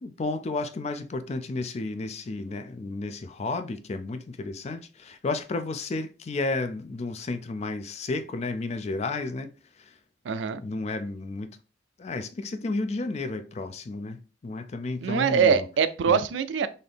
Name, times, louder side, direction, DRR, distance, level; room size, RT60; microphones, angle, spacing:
voice 1, 0.0-9.5 9.8-9.9 10.6-11.5 12.0-15.7 16.1-16.2, left 3 dB, 35° left, 0.4 m, -32 dB
voice 2, 10.2-10.6 15.0-16.7, right 6 dB, 80° right, 0.4 m, -23 dB
3.9 x 2.7 x 3.4 m
head